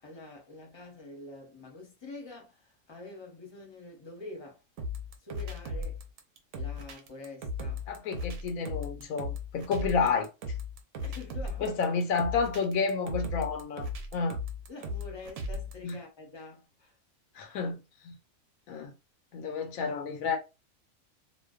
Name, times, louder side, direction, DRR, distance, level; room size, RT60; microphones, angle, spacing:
voice 1, 0.0-4.6 5.2-6.0 6.5-7.9 11.0-11.8 14.7-16.9, left 2 dB, 25° left, 0.6 m, -46 dB
sound 1, 4.8-15.9, left 2 dB, 75° right, 0.9 m, -36 dB
voice 2, 7.9-10.3 11.6-14.4 15.8-16.0 17.3-18.2 18.7-18.9 19.3-20.4, left 5 dB, 85° left, 1.0 m, -30 dB
2.5 x 2.2 x 2.3 m
omnidirectional pair, 1.4 m